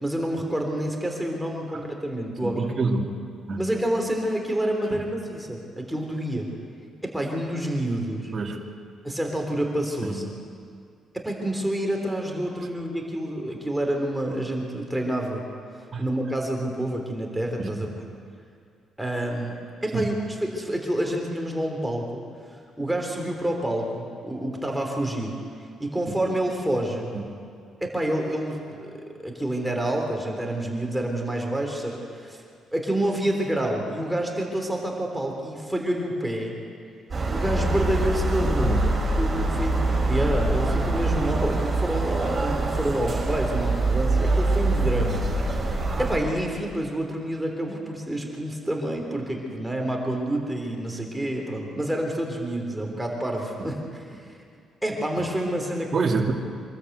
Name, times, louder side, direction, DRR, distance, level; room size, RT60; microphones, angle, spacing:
voice 1, 0.0-2.7 3.6-6.5 7.0-8.3 9.0-10.2 11.1-15.4 16.0-17.9 19.0-19.5 19.8-22.2 22.8-25.3 25.8-27.1 27.8-32.4 32.7-36.6 37.3-38.9 39.2-45.7 46.0-54.4 54.8-56.1, right 1 dB, 5° right, 1 dB, 3.4 m, -28 dB
voice 2, 2.4-3.1 3.5-3.6 4.9-5.0 8.3-8.6 10.0-10.1 15.9-16.0 17.6-17.8 19.9-20.1 27.1-27.2 38.6-38.8 55.9-56.3, right 4 dB, 45° right, 1 dB, 2.5 m, -26 dB
sound 1, 37.1-46.2, right 2 dB, 30° right, 5.5 m, -24 dB
25.0 x 13.5 x 8.1 m, 2.3 s
cardioid pair, 90°, 0 cm